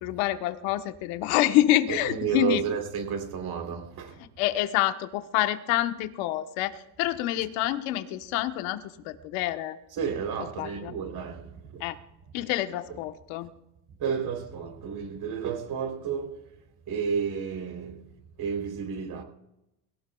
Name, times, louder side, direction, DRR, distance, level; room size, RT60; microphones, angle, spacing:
voice 1, 0.0-2.6 4.4-9.8 10.4-10.9 11.8-11.9 12.3-13.5, left 14 dB, 70° left, 1.3 m, -27 dB
voice 2, 1.9-4.1 9.9-11.8 14.0-16.4 16.9-17.9 18.4-19.2, right 6 dB, 50° right, 3.6 m, -31 dB
21.5 x 18.0 x 2.4 m
supercardioid pair, 105°, 49 cm